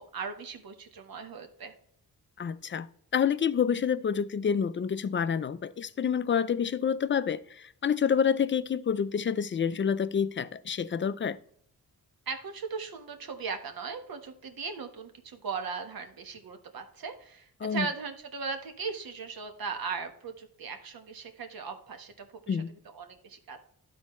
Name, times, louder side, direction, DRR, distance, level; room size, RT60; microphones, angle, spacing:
voice 1, 0.0-1.7 12.3-22.6 22.9-23.6, right 5 dB, 70° right, 1.2 m, -38 dB
voice 2, 2.4-2.9 3.1-11.4 17.6-17.9 22.5-22.7, left 7 dB, 35° left, 0.4 m, -28 dB
12.0 x 4.2 x 3.1 m
cardioid pair, 90°, 37 cm